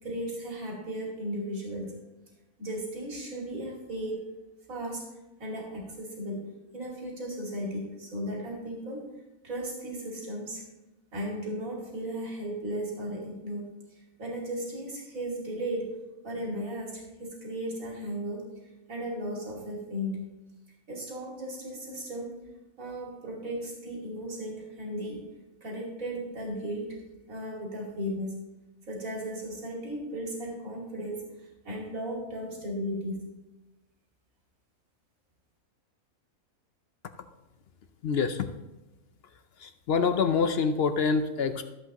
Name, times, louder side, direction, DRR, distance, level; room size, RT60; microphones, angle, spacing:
voice 1, 0.0-1.9 2.6-4.3 4.7-5.0 5.4-6.4 6.7-9.1 9.4-10.6 11.1-13.7 14.2-15.9 16.2-18.5 18.9-20.3 20.9-22.3 22.8-25.3 25.6-27.0 27.3-28.4 28.9-33.3, equal, 65° right, -2 dB, 2.9 m, -35 dB
voice 2, 38.0-38.5 39.6-41.6, left 5 dB, 65° left, 8 dB, 0.6 m, -26 dB
13.5 x 8.0 x 3.0 m, 1.0 s
omnidirectional pair, 1.5 m